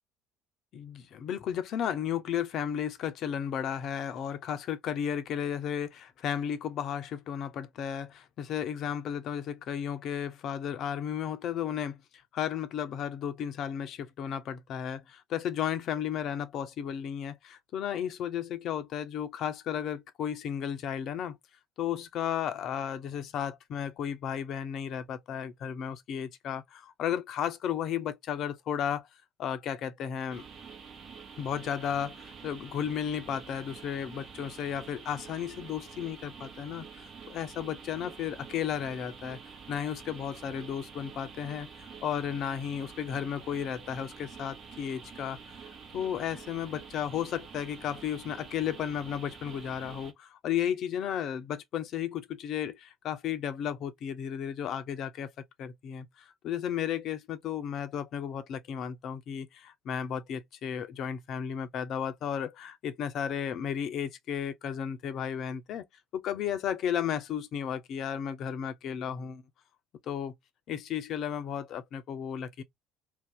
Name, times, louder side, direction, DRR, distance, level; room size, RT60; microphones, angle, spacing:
voice 1, 0.7-12.0 12.3-21.4 21.8-29.1 29.4-30.4 31.4-39.4 39.7-45.4 45.9-55.3 55.6-56.1 56.4-65.8 66.1-69.4 70.0-70.3 70.7-72.6, left 9 dB, 50° left, 0.5 m, -34 dB
sound 1, 30.3-50.1, right 6 dB, 45° right, 0.9 m, -47 dB
2.6 x 2.2 x 3.6 m
figure-of-eight pair, 60°, 0 cm